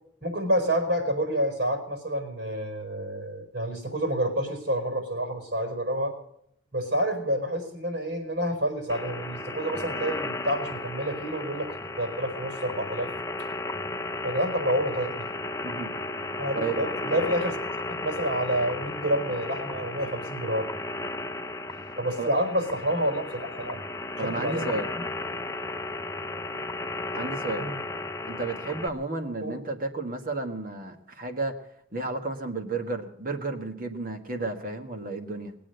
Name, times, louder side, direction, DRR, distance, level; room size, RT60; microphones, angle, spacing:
voice 1, 0.2-6.1 6.7-11.7 12.0-13.1 14.2-15.3 16.4-17.6 17.9-20.7 22.0-23.8 24.2-24.7 27.6-27.8 29.4-29.6, right 1 dB, 65° right, 4 dB, 4.7 m, -28 dB
sound 1, 8.9-28.9, left 2 dB, 15° left, 0.6 m, -34 dB
voice 2, 15.6-15.9 16.6-16.8 17.1-17.3 22.2-22.3 24.2-24.9 27.1-27.7 28.3-31.6 31.9-35.6, right 3 dB, 45° right, 5 dB, 1.5 m, -32 dB
20.0 x 8.5 x 7.9 m, 0.72 s
head